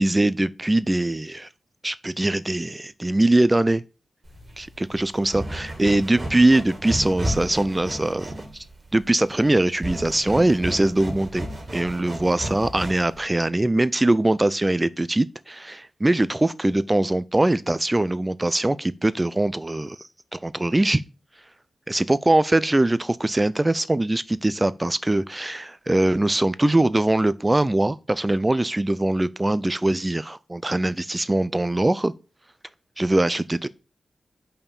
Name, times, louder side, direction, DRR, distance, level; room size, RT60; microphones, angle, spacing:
voice 1, 0.0-1.5 1.8-3.8 4.6-8.6 8.9-11.5 11.7-20.0 20.3-21.0 21.9-32.1 33.0-33.7, right 1 dB, 25° right, 0.5 m, -22 dB
sound 1, 4.3-13.2, right 1 dB, 45° right, 2.3 m, -33 dB
5.6 x 4.5 x 5.5 m
cardioid pair, 45°, 0 cm